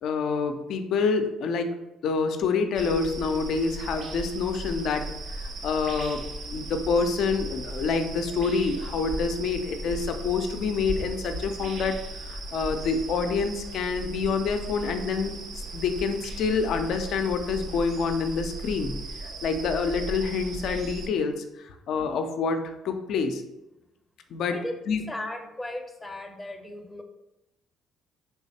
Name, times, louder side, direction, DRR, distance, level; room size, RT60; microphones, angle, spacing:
voice 1, 0.0-1.7 2.0-15.4 15.7-18.9 19.2-23.4 24.3-24.6 24.9-25.0, left 5 dB, 65° left, 7 dB, 0.4 m, -27 dB
sound 1, 2.7-21.1, right 2 dB, 60° right, 0.5 m, -37 dB
voice 2, 25.1-27.0, left 1 dB, 15° left, 4 dB, 0.6 m, -36 dB
3.4 x 3.1 x 2.8 m, 0.94 s
hypercardioid pair, 60°, 0 cm